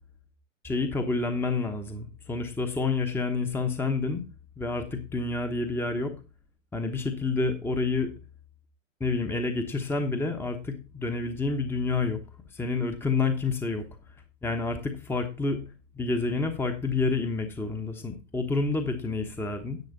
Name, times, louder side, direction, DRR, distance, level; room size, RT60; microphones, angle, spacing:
voice 1, 0.6-4.2 4.6-6.1 6.7-8.1 9.0-12.2 12.5-13.8 14.4-15.6 15.9-19.8, left 3 dB, 5° left, 6 dB, 1.1 m, -28 dB
10.5 x 7.9 x 4.0 m, 0.29 s
figure-of-eight pair, 105°, 39 cm